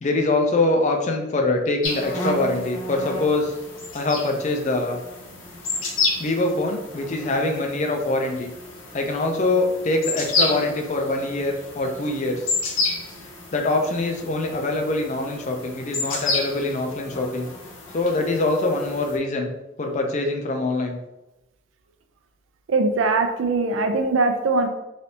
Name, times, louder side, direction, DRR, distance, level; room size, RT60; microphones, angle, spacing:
voice 1, 0.0-3.5 3.9-5.0 6.2-8.5 8.9-12.5 13.5-17.5 17.9-19.5 19.8-21.0, left 2 dB, 35° left, 3 dB, 0.4 m, -24 dB
sound 1, 1.8-19.2, left 3 dB, 85° left, 0.7 m, -31 dB
voice 2, 22.7-24.7, right 3 dB, 80° right, 6 dB, 0.4 m, -21 dB
3.2 x 2.6 x 2.7 m, 0.97 s
head